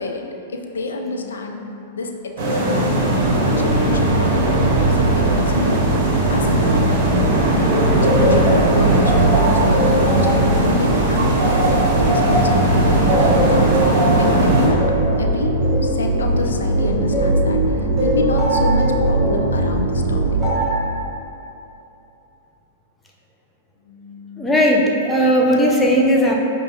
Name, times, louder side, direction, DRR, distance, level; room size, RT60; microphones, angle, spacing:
voice 1, 0.0-4.6 4.9-5.8 6.3-6.9 8.0-20.4 23.8-24.6 25.1-25.3, left 3 dB, 80° left, 3 dB, 0.3 m, -28 dB
sound 1, 2.4-14.7, right 1 dB, 50° right, 0.8 m, -19 dB
sound 2, 2.5-20.5, right 2 dB, 80° right, 0.5 m, -21 dB
sound 3, 7.6-12.6 13.1-17.4 18.0-19.4 20.4-20.9, equal, 5° right, 1.0 m, -24 dB
voice 2, 24.4-26.3, equal, 10° left, -2 dB, 0.5 m, -16 dB
5.3 x 2.2 x 2.8 m, 2.9 s
hypercardioid pair, 105°, 0 cm